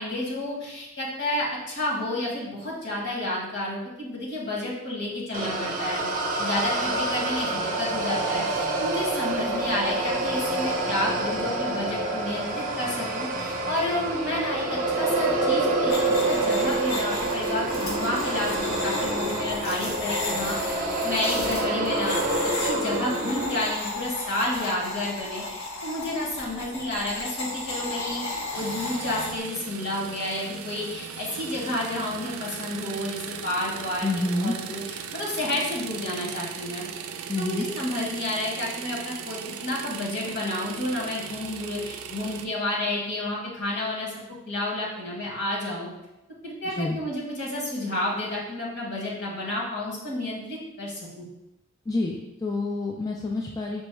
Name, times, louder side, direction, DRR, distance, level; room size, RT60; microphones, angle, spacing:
voice 1, 0.0-6.0 6.4-20.6 21.0-36.8 37.4-44.1 44.5-45.9 46.4-51.2, left 1 dB, 55° left, -3 dB, 1.3 m, -30 dB
sound 1, 5.3-23.6, right 2 dB, 40° right, 0.6 m, -27 dB
sound 2, 15.9-29.4, left 2 dB, 80° left, 1.1 m, -34 dB
sound 3, 28.5-42.4, right 7 dB, 75° right, 0.4 m, -38 dB
voice 2, 34.0-34.6 37.3-37.7 46.7-47.0 51.9-53.8, left 2 dB, 15° left, -1 dB, 0.3 m, -28 dB
5.4 x 2.0 x 4.5 m, 0.93 s
head